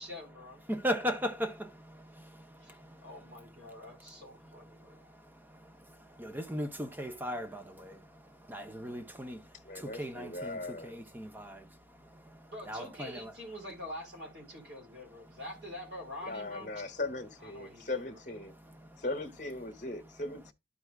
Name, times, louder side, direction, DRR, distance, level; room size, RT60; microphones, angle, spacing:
voice 1, 0.0-0.6 2.6-5.1 12.5-16.7 17.4-18.2, left 1 dB, 70° right, 4.1 m, -46 dB
voice 2, 0.7-4.1 4.4-13.3 15.3-15.4 18.7-19.0, equal, 10° right, 0.8 m, -39 dB
voice 3, 9.6-11.0 16.2-18.5 19.0-20.5, left 2 dB, 45° left, 1.2 m, -38 dB
12.5 x 4.7 x 2.4 m
head